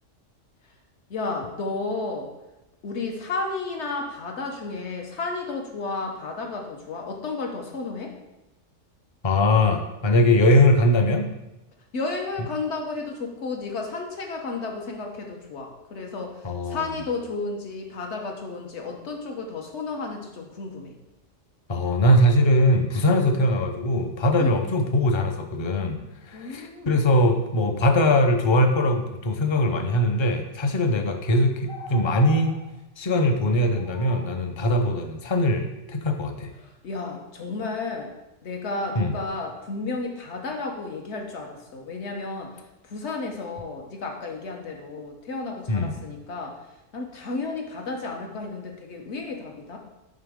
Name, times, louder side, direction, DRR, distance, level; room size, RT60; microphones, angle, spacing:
voice 1, 1.1-2.3 2.8-8.2 11.9-20.9 24.4-24.5 26.3-27.0 36.6-38.1 38.4-49.8, left 3 dB, 60° left, 2 dB, 1.3 m, -32 dB
voice 2, 9.2-11.3 16.4-16.8 21.7-26.0 26.3-32.5 33.0-36.5 39.0-39.1 45.7-46.0, left 1 dB, 35° left, 5 dB, 0.5 m, -21 dB
sound 1, 31.7-32.6 33.7-34.3 38.0-38.1 38.7-39.3, left 3 dB, 80° left, 1.6 m, -41 dB
7.3 x 5.8 x 3.6 m, 0.96 s
omnidirectional pair, 1.3 m